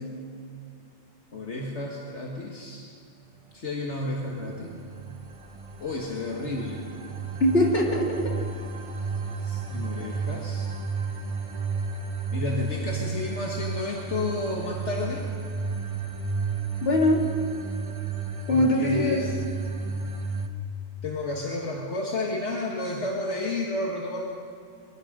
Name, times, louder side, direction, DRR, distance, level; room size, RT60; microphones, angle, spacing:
voice 1, 1.3-2.8 3.5-4.7 5.8-6.8 9.4-10.7 12.3-15.3 18.5-19.3 21.0-24.3, left 2 dB, 75° left, -1 dB, 2.2 m, -31 dB
sound 1, 4.2-20.5, right 4 dB, 30° right, 1.1 m, -32 dB
voice 2, 7.4-8.3 16.8-17.2 18.5-19.2, left 1 dB, 55° left, -1 dB, 3.0 m, -22 dB
23.5 x 22.5 x 5.2 m, 2.5 s
omnidirectional pair, 1.2 m